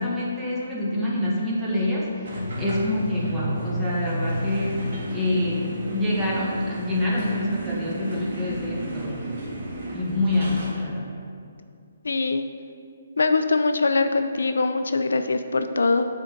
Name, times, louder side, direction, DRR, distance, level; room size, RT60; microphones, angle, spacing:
voice 1, 0.0-9.2 9.9-11.1, left 1 dB, 10° right, -7 dB, 1.5 m, -26 dB
sound 1, 2.2-10.8, right 1 dB, 60° right, 1.8 m, -32 dB
voice 2, 12.0-12.4 13.2-16.1, left 3 dB, 80° left, 8 dB, 0.4 m, -22 dB
7.9 x 3.7 x 5.3 m, 2.3 s
hypercardioid pair, 145°, 0 cm